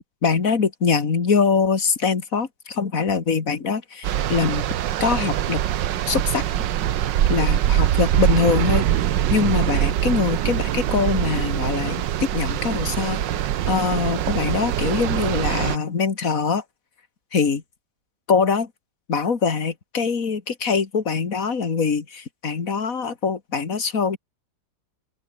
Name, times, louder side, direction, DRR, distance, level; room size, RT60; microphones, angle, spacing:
voice 1, 0.2-4.6 5.0-5.6 6.1-6.4 7.3-8.9 9.3-13.3 13.7-16.6 17.3-17.6 18.3-18.7 19.1-24.2, left 5 dB, 50° left, 2.5 m, -23 dB
sound 1, 4.0-15.8, right 11 dB, 80° right, 1.6 m, -23 dB
open air
omnidirectional pair, 2.0 m